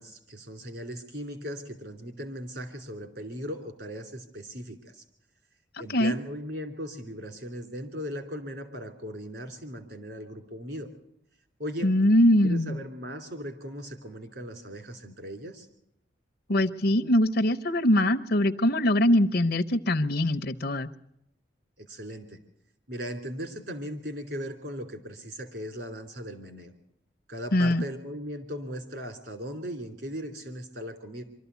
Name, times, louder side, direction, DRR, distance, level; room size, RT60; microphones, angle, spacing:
voice 1, 0.0-5.0 5.8-10.9 11.6-11.9 12.4-15.7 21.8-22.4 22.9-26.7 27.3-31.2, equal, 60° right, 6 dB, 3.0 m, -38 dB
voice 2, 11.8-12.8 16.5-20.9 27.5-27.8, left 1 dB, 55° left, 11 dB, 0.8 m, -22 dB
24.0 x 13.0 x 8.2 m, 0.82 s
head